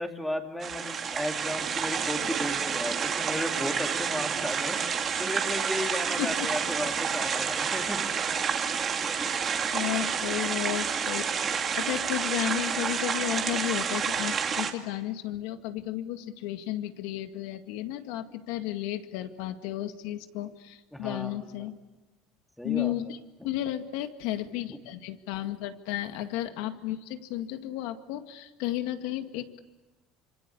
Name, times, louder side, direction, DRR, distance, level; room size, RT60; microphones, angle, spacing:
voice 1, 0.0-8.1 9.2-9.3 20.9-21.7 22.6-22.9, left 1 dB, 5° left, 4 dB, 2.6 m, -35 dB
sound 1, 0.6-14.7, right 6 dB, 30° right, 2.3 m, -29 dB
voice 2, 9.7-21.8 22.6-29.6, left 13 dB, 75° left, 8 dB, 2.0 m, -33 dB
26.5 x 25.5 x 8.4 m, 1.1 s
cardioid pair, 155°, 0 cm